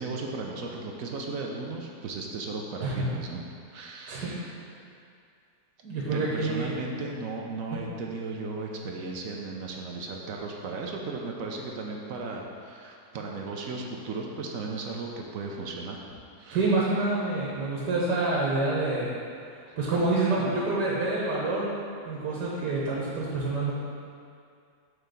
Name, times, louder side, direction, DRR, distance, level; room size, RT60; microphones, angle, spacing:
voice 1, 0.0-3.4 3.7-4.6 6.1-16.0 16.4-16.6, right 3 dB, 65° right, 0 dB, 1.0 m, -36 dB
voice 2, 5.8-6.7 7.7-7.8 16.5-19.1 19.8-21.7 22.0-23.7, right 3 dB, 85° right, -6 dB, 1.7 m, -27 dB
6.4 x 4.5 x 5.2 m, 2.3 s
omnidirectional pair, 1.8 m